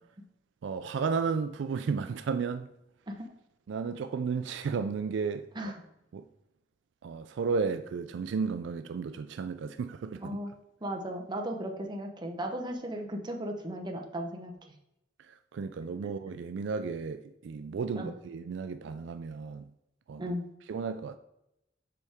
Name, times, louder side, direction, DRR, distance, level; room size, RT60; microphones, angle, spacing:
voice 1, 0.6-2.7 3.7-5.5 6.1-6.2 7.0-10.3 15.5-19.6 20.1-20.3 20.7-21.2, right 5 dB, 70° right, 0.3 m, -33 dB
voice 2, 10.2-10.5 10.8-14.5 18.0-18.1 20.2-20.4, equal, 25° right, 0.8 m, -36 dB
6.9 x 4.7 x 3.5 m
head